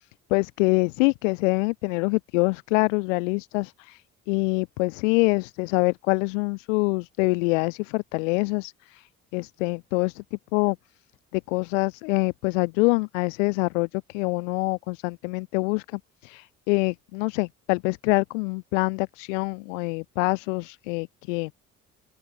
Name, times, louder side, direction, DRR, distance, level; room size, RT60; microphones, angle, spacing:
voice 1, 0.0-10.8 11.3-21.5, left 28 dB, 75° left, 2.8 m, -25 dB
open air
hypercardioid pair, 50°, 38 cm